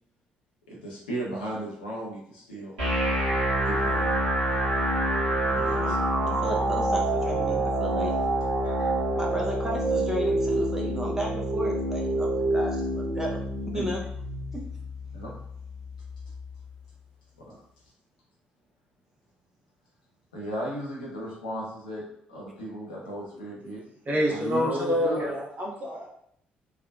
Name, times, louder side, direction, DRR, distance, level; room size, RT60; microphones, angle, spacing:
voice 1, 0.7-2.7 3.6-4.1 5.5-6.0 8.6-8.9 13.7-13.9 15.1-15.3 17.4-17.6 20.3-22.0 22.3-23.8 24.3-25.3, right 1 dB, 80° left, -4 dB, 0.8 m, -35 dB
sound 1, 2.8-16.8, right 1 dB, 75° right, 1.1 m, -27 dB
voice 2, 6.3-8.2 9.2-13.4 13.7-14.0 14.5-14.6, equal, 10° right, -2 dB, 0.6 m, -34 dB
voice 3, 24.1-26.1, equal, 35° right, -3 dB, 1.0 m, -27 dB
3.5 x 2.2 x 2.3 m, 0.69 s
figure-of-eight pair, 45°, 5 cm